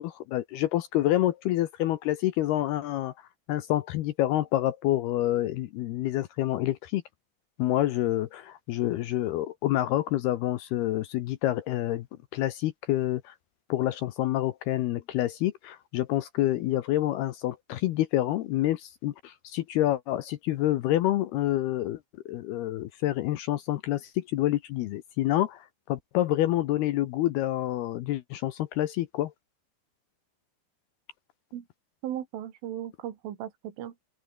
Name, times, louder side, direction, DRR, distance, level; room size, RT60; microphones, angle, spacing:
voice 1, 0.0-3.1 3.5-7.0 7.6-12.1 12.3-13.3 13.7-22.0 22.3-29.3, left 14 dB, 75° left, 2.5 m, -27 dB
voice 2, 32.0-33.9, right 11 dB, 85° right, 4.9 m, -36 dB
open air
omnidirectional pair, 5.5 m